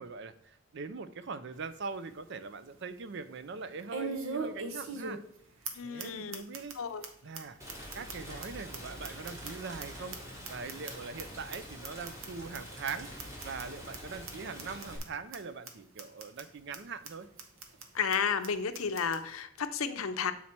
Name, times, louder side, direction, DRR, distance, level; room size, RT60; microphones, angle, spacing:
voice 1, 0.0-5.2 5.8-6.7 7.2-7.6 7.9-10.2 10.5-17.3, right 4 dB, 55° right, 12 dB, 0.5 m, -42 dB
sound 1, 1.5-1.6 2.1-2.2 3.9-5.4 5.6-5.7 6.0-6.1 6.3-6.7 7.0-7.1 7.3-7.4 7.7-9.8 10.1-11.2 11.5-11.6 11.8-12.3 12.5-12.6 12.9-13.0 13.2-13.6 13.9-14.0 14.3-14.4 14.6-15.0 15.3-15.4 15.7-15.8 16.0-16.4 16.7-16.8 17.0-17.1 17.4-17.8 18.1-18.2 18.4-18.5 18.7-19.2, right 4 dB, 70° right, 1.0 m, -39 dB
voice 2, 5.7-6.4 6.7-7.0 17.9-20.3, left 6 dB, 75° left, 10 dB, 0.6 m, -32 dB
Rain, 7.6-15.0, equal, 15° right, 1.3 m, -46 dB
7.4 x 4.2 x 4.3 m, 0.70 s
head